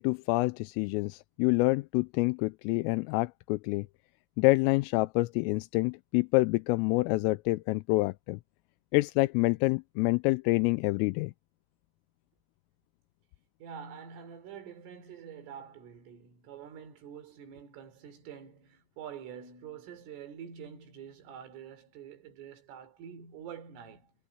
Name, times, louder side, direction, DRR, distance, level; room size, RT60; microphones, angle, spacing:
voice 1, 0.0-3.9 4.4-8.4 8.9-11.3, left 23 dB, 85° left, 3.2 m, -27 dB
voice 2, 13.6-24.1, right 8 dB, 75° right, 6.5 m, -46 dB
omnidirectional pair, 5.8 m